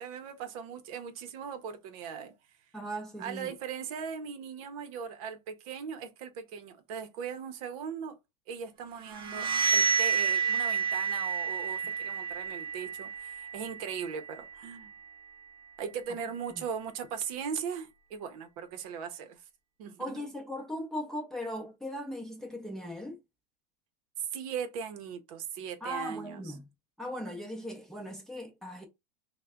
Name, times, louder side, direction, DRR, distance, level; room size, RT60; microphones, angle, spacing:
voice 1, 0.0-2.3 3.2-8.2 8.5-14.9 15.8-19.4 19.8-20.2 24.2-26.5, right 7 dB, 60° right, 0.8 m, -39 dB
voice 2, 2.7-3.5 16.5-16.6 20.0-23.2 25.8-26.6 27.0-28.9, equal, ahead, 0.6 m, -38 dB
sound 1, 9.0-14.7, right 5 dB, 25° right, 1.0 m, -30 dB
3.3 x 2.2 x 3.6 m
supercardioid pair, 150°, 21 cm